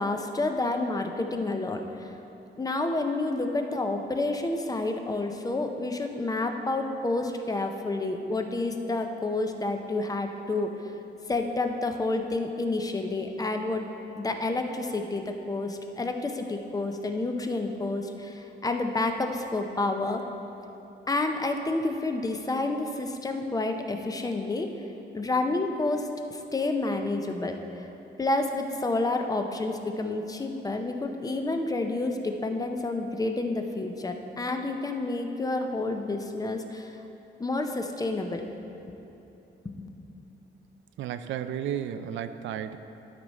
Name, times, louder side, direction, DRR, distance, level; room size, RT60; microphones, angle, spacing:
voice 1, 0.0-2.1 2.6-10.7 11.3-13.8 14.2-20.2 21.1-24.7 25.1-27.9 28.2-36.9 37.4-38.4 39.6-39.9, left 2 dB, 20° left, 5 dB, 0.6 m, -29 dB
voice 2, 41.0-42.8, right 9 dB, 85° right, 11 dB, 0.4 m, -33 dB
12.0 x 4.8 x 4.1 m, 2.9 s
cardioid pair, 120°, 19 cm